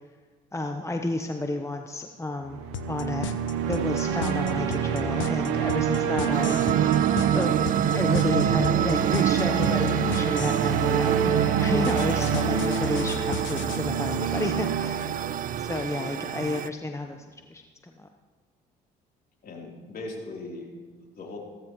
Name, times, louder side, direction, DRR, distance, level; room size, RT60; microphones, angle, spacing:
voice 1, 0.5-3.3 3.7-7.6 7.9-15.2 15.6-17.2 17.5-18.1, left 2 dB, 15° left, 5 dB, 0.9 m, -32 dB
sound 1, 2.4-16.6, right 7 dB, 75° right, 1.1 m, -27 dB
sound 2, 2.7-10.7 11.8-13.8, left 10 dB, 70° left, 0.8 m, -35 dB
sound 3, 6.3-16.7, right 10 dB, 40° right, 0.4 m, -27 dB
voice 2, 19.4-21.4, left 2 dB, 45° left, -1 dB, 3.5 m, -39 dB
15.5 x 14.0 x 3.1 m, 1.4 s
hypercardioid pair, 60°, 21 cm